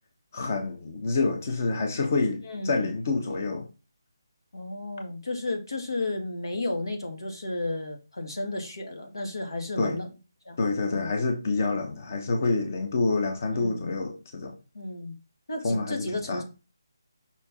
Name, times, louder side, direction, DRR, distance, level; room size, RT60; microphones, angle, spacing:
voice 1, 0.3-3.7 9.8-10.0 10.6-14.5 15.6-16.4, left 3 dB, 40° left, 1.0 m, -27 dB
voice 2, 2.4-2.9 4.5-10.1 10.5-10.6 10.9-11.1 13.5-13.9 14.7-15.2 15.5-16.4, left 2 dB, 90° left, 2.2 m, -33 dB
5.7 x 4.5 x 3.6 m
hypercardioid pair, 170°, 2 cm